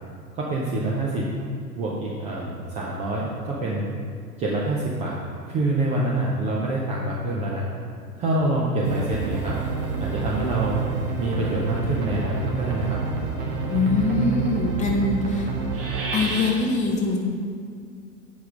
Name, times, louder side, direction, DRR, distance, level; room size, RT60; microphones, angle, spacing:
voice 1, 0.3-1.3 1.7-3.9 4.4-5.2 5.5-7.7 8.2-9.5 10.0-10.8 11.2-13.0, right 2 dB, 15° right, -4 dB, 0.5 m, -26 dB
sound 1, 8.8-16.5, right 5 dB, 35° right, 1.3 m, -28 dB
voice 2, 13.7-15.5 16.1-17.2, left 3 dB, 15° left, 0 dB, 0.8 m, -23 dB
7.9 x 5.2 x 5.0 m, 2.2 s
figure-of-eight pair, 100°, 48 cm